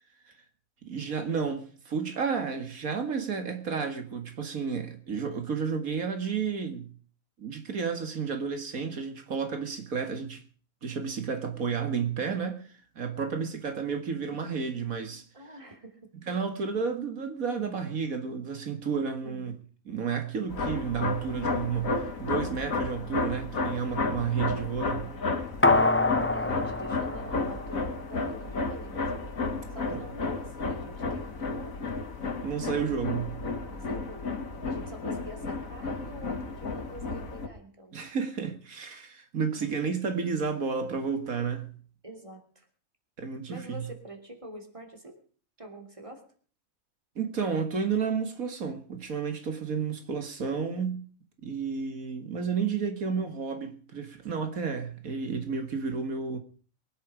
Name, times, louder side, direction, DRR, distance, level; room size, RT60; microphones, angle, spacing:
voice 1, 0.8-6.9 7.4-10.4 10.8-15.3 16.3-19.5 19.9-25.1 29.9-30.0 32.4-33.4 37.9-41.7 43.2-43.9 47.2-51.1 51.4-56.4, right 6 dB, 90° right, 2.4 m, -31 dB
voice 2, 15.3-16.4 19.2-19.5 24.8-25.2 26.3-29.1 29.7-31.8 32.7-33.2 33.7-34.3 34.6-38.1 39.5-39.8 42.0-42.7 43.5-45.2 45.6-46.2, right 1 dB, 25° right, 3.3 m, -46 dB
sound 1, 20.5-37.5, left 3 dB, 75° left, 2.3 m, -32 dB
sound 2, 25.6-28.2 28.5-28.6, left 2 dB, 15° left, 0.6 m, -26 dB
23.0 x 10.5 x 5.1 m
omnidirectional pair, 1.4 m